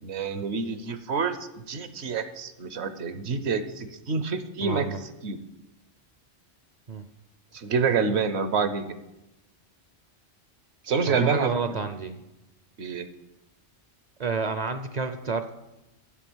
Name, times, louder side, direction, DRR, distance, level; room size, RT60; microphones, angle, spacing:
voice 1, 0.0-4.9 5.2-5.4 7.5-8.9 10.8-11.8 12.8-13.1, right 5 dB, 70° right, 10 dB, 1.1 m, -27 dB
voice 2, 4.6-5.0 6.9-7.1 11.1-12.2 14.2-15.5, right 5 dB, 50° right, 9 dB, 0.6 m, -29 dB
9.8 x 7.8 x 6.1 m, 0.93 s
omnidirectional pair, 1.2 m